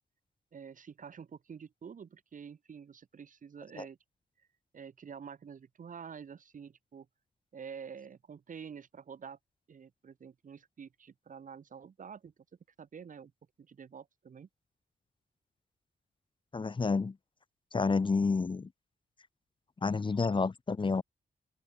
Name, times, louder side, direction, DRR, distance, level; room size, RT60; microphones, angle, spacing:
voice 1, 0.5-4.0 4.4-4.5 4.7-7.1 7.5-9.4 9.7-12.3 12.8-13.3 13.6-14.5, right 6 dB, 55° right, 1.2 m, -48 dB
voice 2, 16.5-17.2 17.7-18.7 19.8-21.0, left 4 dB, 30° left, 0.9 m, -29 dB
wide cardioid pair, 115°, 17 cm